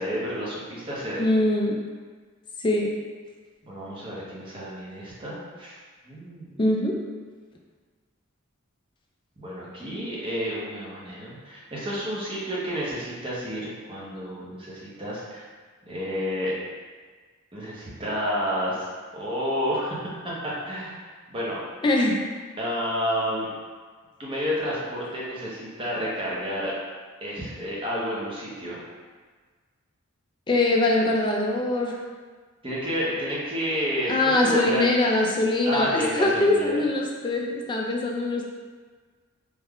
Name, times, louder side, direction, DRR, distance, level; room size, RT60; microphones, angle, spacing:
voice 1, 0.0-1.2 3.6-5.8 6.0-6.6 9.4-15.4 15.9-16.6 17.5-18.9 19.1-21.6 22.6-23.5 24.2-26.7 27.2-28.8 32.6-34.9 35.7-36.8, equal, 25° right, -6 dB, 0.8 m, -30 dB
voice 2, 1.2-1.8 2.6-2.9 6.6-7.0 21.8-22.2 30.5-32.0 34.1-38.5, left 2 dB, 20° left, -1 dB, 0.3 m, -23 dB
3.2 x 2.3 x 3.6 m, 1.5 s
head